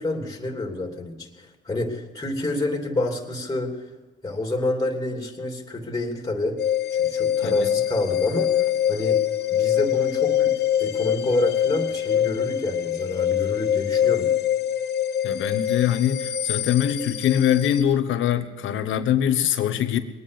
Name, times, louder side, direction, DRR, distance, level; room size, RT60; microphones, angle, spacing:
voice 1, 0.0-3.8 4.2-6.6 6.9-9.2 9.5-14.3, left 2 dB, 20° left, 2 dB, 3.0 m, -28 dB
sound 1, 6.6-17.8, left 10 dB, 55° left, 1.0 m, -24 dB
voice 2, 15.2-20.0, left 10 dB, 80° left, 10 dB, 1.3 m, -23 dB
21.5 x 9.7 x 7.0 m, 1.3 s
cardioid pair, 90°, 20 cm